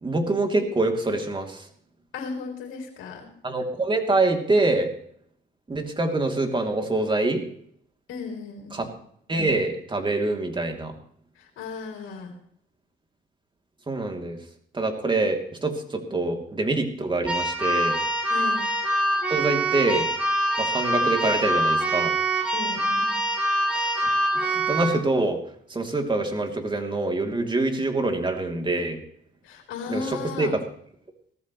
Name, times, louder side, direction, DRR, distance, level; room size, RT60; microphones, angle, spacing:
voice 1, 0.0-1.6 3.4-4.9 5.7-7.4 8.7-8.9 9.3-10.9 13.9-14.4 14.7-18.0 19.3-20.1 20.6-22.1 23.7-24.0 24.3-25.4 25.7-29.0 29.9-30.0 30.4-30.5, right 2 dB, 25° right, 4 dB, 3.0 m, -25 dB
voice 2, 2.1-3.3 8.1-9.0 11.3-12.3 18.3-18.6 22.5-23.2 29.4-30.5, left 4 dB, 90° left, 2 dB, 3.2 m, -35 dB
Keyboard (musical), 17.2-25.0, right 1 dB, 5° right, 4.6 m, -24 dB
17.5 x 14.0 x 3.2 m, 0.65 s
cardioid pair, 90°, 20 cm